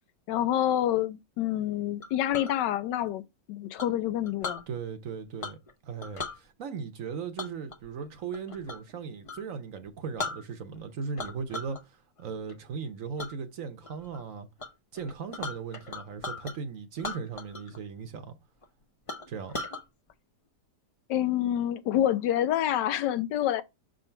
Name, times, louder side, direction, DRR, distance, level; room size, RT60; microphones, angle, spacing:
voice 1, 0.3-3.2 3.5-4.6 21.1-23.6, left 11 dB, 90° left, 1.3 m, -27 dB
Chink clink, 2.0-2.5 3.8-4.6 5.4-5.7 6.0-6.4 7.4-8.9 9.2-9.4 9.9-10.0 10.2-10.8 11.2-11.8 12.2-12.5 13.2-13.3 13.8-14.2 14.6-14.7 14.9-16.6 17.0-17.8 18.0-18.1 18.6-18.7 19.1-19.8, left 3 dB, 40° left, 0.4 m, -38 dB
voice 2, 4.7-5.6 5.8-14.5 14.9-18.4 19.3-19.6, right 5 dB, 60° right, 1.0 m, -38 dB
6.2 x 3.8 x 4.4 m
omnidirectional pair, 1.8 m